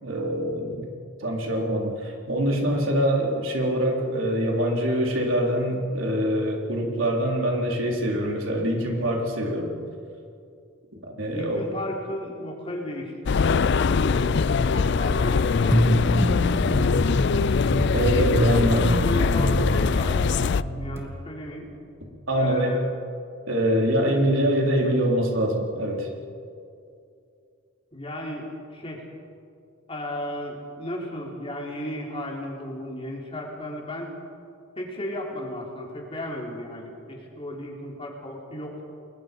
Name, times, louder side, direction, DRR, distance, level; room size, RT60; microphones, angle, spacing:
voice 1, 0.0-0.8 1.2-9.7 11.2-11.6 17.9-18.8 22.3-22.8 23.5-26.1, equal, 85° right, 0 dB, 4.1 m, -24 dB
voice 2, 11.3-17.4 18.1-18.6 18.9-21.7 22.4-22.8 24.0-24.1 27.9-29.1 29.9-34.1 34.8-38.8, left 1 dB, 30° left, -1 dB, 4.2 m, -35 dB
sound 1, 13.2-20.6, left 5 dB, 60° left, 0.5 m, -22 dB
sound 2, 15.7-21.0, equal, 15° right, 2.0 m, -25 dB
30.0 x 21.5 x 5.5 m, 2.5 s
head